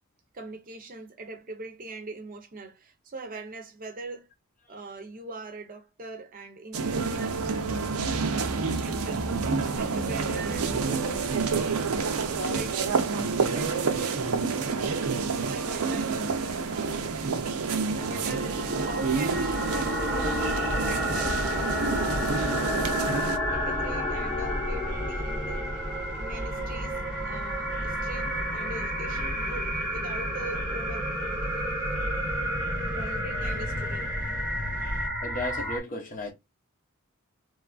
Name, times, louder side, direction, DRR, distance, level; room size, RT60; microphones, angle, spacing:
voice 1, 0.3-4.3 4.7-8.0 8.8-9.3 9.8-13.0 13.4-17.5 17.9-19.7 20.9-21.5 21.9-22.4 23.5-25.7 26.2-31.1 32.9-34.1, right 2 dB, 40° right, 0.6 m, -42 dB
sound 1, 6.7-23.4, right 4 dB, 80° right, 0.5 m, -28 dB
sound 2, 17.9-35.8, equal, 5° right, 0.8 m, -31 dB
sound 3, 20.1-35.1, equal, 90° left, 0.8 m, -37 dB
voice 2, 35.2-36.3, left 1 dB, 35° left, 0.7 m, -34 dB
3.1 x 2.3 x 2.3 m
head